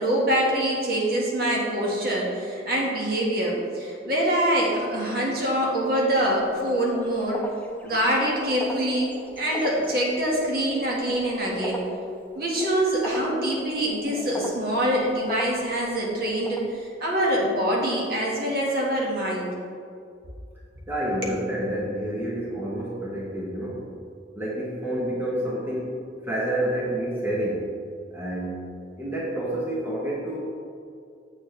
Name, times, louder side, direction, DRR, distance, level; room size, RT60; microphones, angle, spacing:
voice 1, 0.0-7.4 7.8-11.8 12.3-19.5, right 1 dB, 55° right, -3 dB, 1.6 m, -25 dB
sound 1, 6.2-17.1, equal, 10° left, 0.5 m, -38 dB
voice 2, 20.9-23.9 24.4-27.7 28.1-28.7 29.0-30.5, right 1 dB, 10° right, -5 dB, 0.9 m, -29 dB
7.7 x 6.8 x 3.2 m, 2.4 s
head